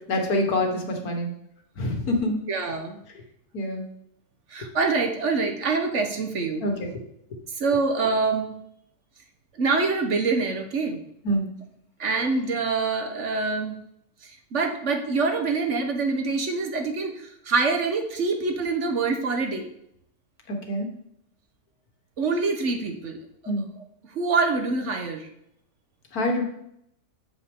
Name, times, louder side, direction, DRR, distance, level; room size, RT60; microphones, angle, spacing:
voice 1, 0.1-1.3 1.8-2.4 3.5-3.9 6.6-6.9 11.2-11.5 20.5-20.9 23.5-23.7 26.1-26.4, left 1 dB, 80° left, 3 dB, 2.0 m, -26 dB
voice 2, 2.5-3.0 4.5-6.6 7.6-8.5 9.5-11.0 12.0-13.8 14.2-19.7 22.2-23.2 23.4-23.5 24.1-25.3, right 4 dB, 55° right, 5 dB, 1.3 m, -25 dB
8.3 x 7.1 x 3.6 m, 0.75 s
omnidirectional pair, 1.5 m